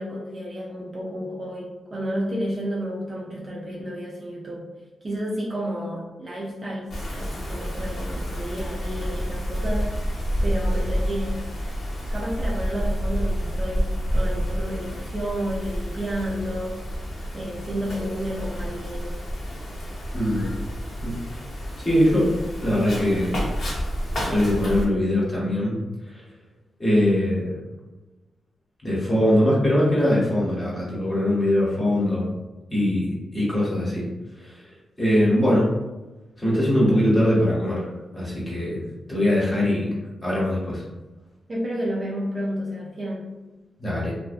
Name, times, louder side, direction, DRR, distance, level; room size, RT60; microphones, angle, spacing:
voice 1, 0.0-4.7 5.0-9.9 10.4-11.4 12.1-16.8 17.3-19.2 41.5-43.3, equal, 30° right, -4 dB, 0.4 m, -31 dB
Wind, 6.9-24.8, equal, 55° left, 0.7 m, -29 dB
voice 2, 20.1-20.6 21.0-21.2 21.8-22.3 22.6-23.4 24.2-25.8 26.0-26.2 26.8-27.6 28.8-32.3 32.7-34.1 34.3-34.7 35.0-35.7 36.4-37.9 38.1-38.8 39.1-40.8 43.8-44.1, left 1 dB, 20° left, -6 dB, 0.8 m, -22 dB
2.4 x 2.1 x 2.4 m, 1.1 s
wide cardioid pair, 130°, 0 cm